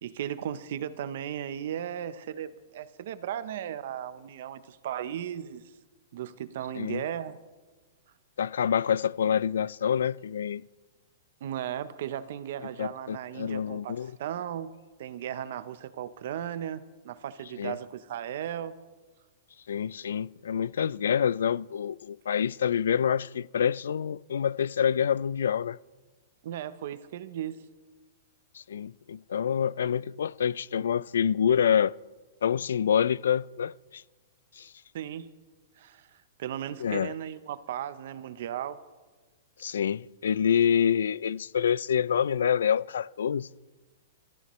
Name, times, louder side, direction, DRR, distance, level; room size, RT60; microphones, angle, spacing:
voice 1, 0.0-5.6 6.1-7.4 11.4-18.7 26.4-27.6 34.9-35.3 35.8-38.8, right 10 dB, 50° right, 0.7 m, -36 dB
voice 2, 8.4-10.6 12.8-14.1 17.6-17.8 19.7-25.8 28.5-31.9 32.4-34.0 34.6-34.7 36.8-37.1 39.6-43.5, left 8 dB, 85° left, 0.4 m, -27 dB
25.5 x 14.0 x 3.1 m
hypercardioid pair, 175°, 0 cm